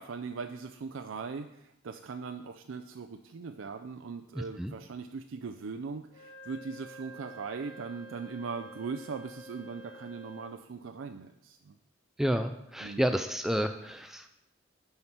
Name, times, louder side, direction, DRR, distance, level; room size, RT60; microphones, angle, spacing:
voice 1, 0.0-11.7 12.8-13.0, right 5 dB, 80° right, 6 dB, 0.4 m, -40 dB
voice 2, 4.3-4.7 12.2-14.3, equal, ahead, 7 dB, 0.3 m, -30 dB
Wind instrument woodwind instrument, 6.1-10.6, equal, 25° left, 3.7 m, -49 dB
7.7 x 5.7 x 5.8 m, 0.83 s
head